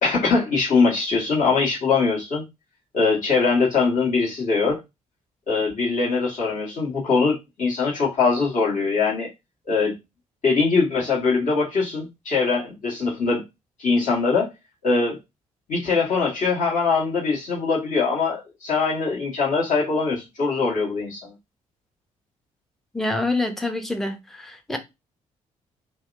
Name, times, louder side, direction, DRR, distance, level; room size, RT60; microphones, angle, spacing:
voice 1, 0.0-2.4 2.9-4.8 5.5-9.3 9.7-9.9 10.4-13.4 13.8-14.5 14.8-15.2 15.7-21.3, left 4 dB, 45° left, 1.4 m, -22 dB
voice 2, 22.9-24.8, left 2 dB, ahead, 0.6 m, -26 dB
2.7 x 2.1 x 2.4 m
figure-of-eight pair, 45°, 18 cm